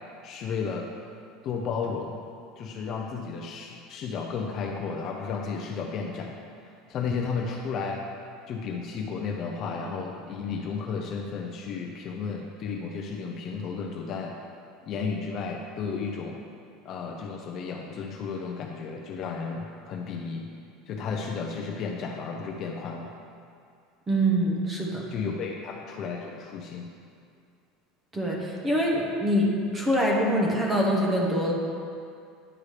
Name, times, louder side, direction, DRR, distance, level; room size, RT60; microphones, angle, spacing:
voice 1, 0.2-0.9 1.4-2.2 2.6-6.3 6.9-8.0 8.5-14.4 14.8-16.4 16.8-20.5 20.9-23.1 25.1-26.9, left 5 dB, 30° left, 1 dB, 0.5 m, -33 dB
voice 2, 24.1-25.0 28.1-29.5 29.7-31.5, equal, 15° right, -2 dB, 0.9 m, -24 dB
9.7 x 4.8 x 4.9 m, 2.4 s
cardioid pair, 180°, 0 cm